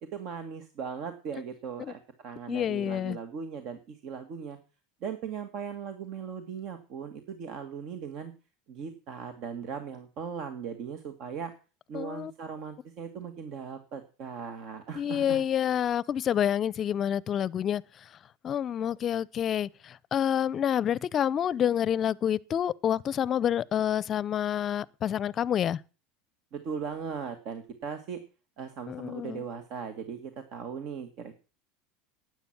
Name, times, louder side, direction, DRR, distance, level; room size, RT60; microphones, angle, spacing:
voice 1, 0.1-4.6 5.0-8.3 8.7-11.5 11.9-15.4 26.5-28.2 28.6-31.3, right 6 dB, 55° right, 1.8 m, -38 dB
voice 2, 2.5-3.2 11.9-12.3 14.9-18.1 18.4-25.8 28.9-29.4, left 9 dB, 40° left, 0.6 m, -28 dB
12.5 x 9.4 x 5.9 m
hypercardioid pair, 95°, 0 cm